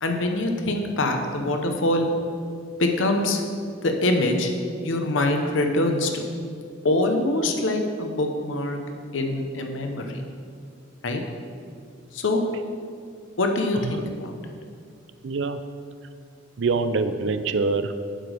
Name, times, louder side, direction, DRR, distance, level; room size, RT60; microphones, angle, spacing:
voice 1, 0.0-2.1 2.8-3.4 3.8-4.5 4.8-6.3 6.8-8.8 9.1-10.2 11.0-11.2 12.1-12.4 13.4-14.4, left 2 dB, 90° left, 4 dB, 0.9 m, -24 dB
voice 2, 15.2-15.6 16.6-18.1, right 4 dB, 70° right, 10 dB, 0.5 m, -25 dB
7.7 x 5.0 x 6.5 m, 2.3 s
head